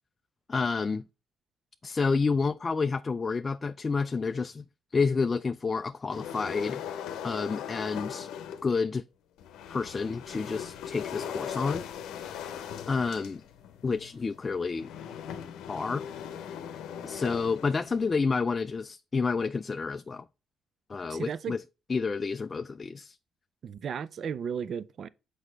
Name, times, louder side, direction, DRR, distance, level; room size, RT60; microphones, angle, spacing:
voice 1, 0.5-1.0 1.8-4.6 4.9-6.8 7.2-8.3 8.6-9.0 9.7-11.9 12.9-13.4 13.8-14.9 15.7-16.1 17.0-20.2 20.9-21.6 21.9-23.2, left 4 dB, 30° left, 0.3 m, -29 dB
sound 1, 6.1-8.7 9.4-18.2, left 8 dB, 90° left, 0.7 m, -39 dB
voice 2, 21.1-21.5 23.6-25.1, right 7 dB, 60° right, 0.5 m, -34 dB
6.4 x 4.9 x 3.3 m
cardioid pair, 90°, 0 cm